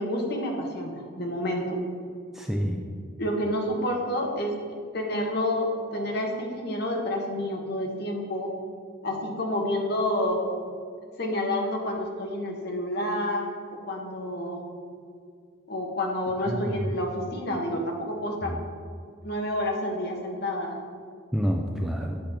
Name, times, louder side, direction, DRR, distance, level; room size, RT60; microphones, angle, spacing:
voice 1, 0.0-1.8 3.2-4.5 4.9-8.5 9.0-10.4 11.2-13.4 13.9-14.6 15.7-18.5 19.2-20.8, left 1 dB, 50° left, 1 dB, 1.1 m, -29 dB
voice 2, 2.3-2.8 16.5-17.0 18.4-18.6 21.3-22.2, equal, ahead, 1 dB, 0.3 m, -28 dB
8.4 x 5.8 x 3.5 m, 2.2 s
head